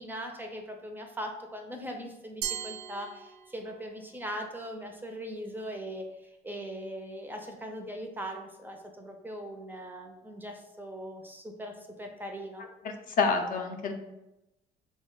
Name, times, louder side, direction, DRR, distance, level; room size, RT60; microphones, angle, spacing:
voice 1, 0.0-12.6, equal, 10° right, 3 dB, 0.4 m, -40 dB
Glass, 2.4-3.9, right 9 dB, 80° right, 0.4 m, -38 dB
voice 2, 13.1-13.9, left 4 dB, 55° left, 4 dB, 0.5 m, -27 dB
3.2 x 2.1 x 3.6 m, 0.93 s
cardioid pair, 110°, 17 cm